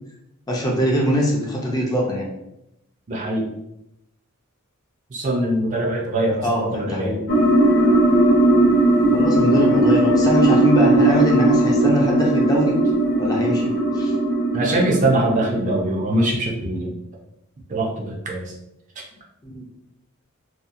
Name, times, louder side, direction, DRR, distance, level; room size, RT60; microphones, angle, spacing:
voice 1, 0.5-2.3 6.4-7.2 9.1-12.8 13.2-14.1 19.4-19.6, equal, 20° left, -2 dB, 0.5 m, -23 dB
voice 2, 3.1-3.5 5.1-6.5 6.7-7.2 14.5-17.0 17.7-18.5, right 1 dB, 35° right, -1 dB, 0.5 m, -22 dB
sound 1, 7.3-15.8, right 1 dB, 60° left, 0.7 m, -18 dB
2.7 x 2.3 x 2.4 m, 0.85 s
head